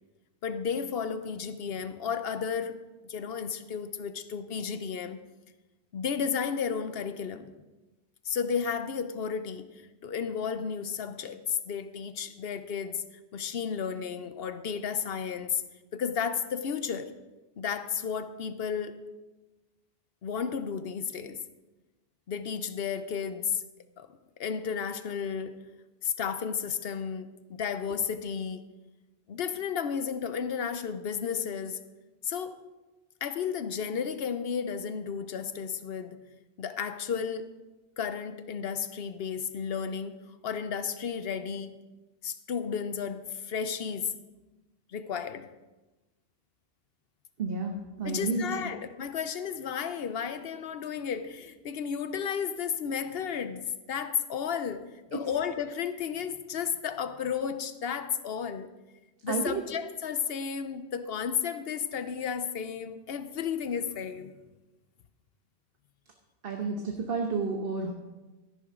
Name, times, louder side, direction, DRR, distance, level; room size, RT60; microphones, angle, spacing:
voice 1, 0.4-2.8 3.0-5.2 5.9-7.5 8.2-13.0 13.3-15.6 15.9-17.1 17.6-19.0 20.2-21.4 22.3-23.6 24.0-24.1 24.4-25.6 26.0-28.6 29.3-31.8 32.2-32.6 33.2-36.2 36.6-37.5 38.0-41.8 42.2-44.1 44.9-45.5 48.0-58.7 59.2-64.4, left 7 dB, 65° left, 10 dB, 0.9 m, -33 dB
voice 2, 47.4-48.7 55.1-55.2 59.3-59.6 66.4-67.9, right 4 dB, 60° right, 3 dB, 1.2 m, -31 dB
13.5 x 11.0 x 3.8 m, 1.1 s
omnidirectional pair, 1.1 m